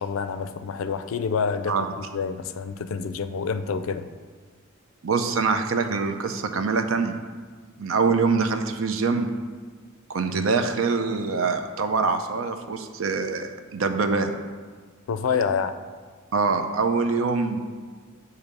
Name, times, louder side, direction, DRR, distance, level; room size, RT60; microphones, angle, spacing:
voice 1, 0.0-4.1 10.3-10.4 15.1-15.8, left 6 dB, 80° left, 11 dB, 0.4 m, -28 dB
voice 2, 5.0-7.2 7.8-9.3 10.1-14.3 16.3-17.6, right 4 dB, 75° right, 7 dB, 0.5 m, -24 dB
8.0 x 2.7 x 5.2 m, 1.5 s
head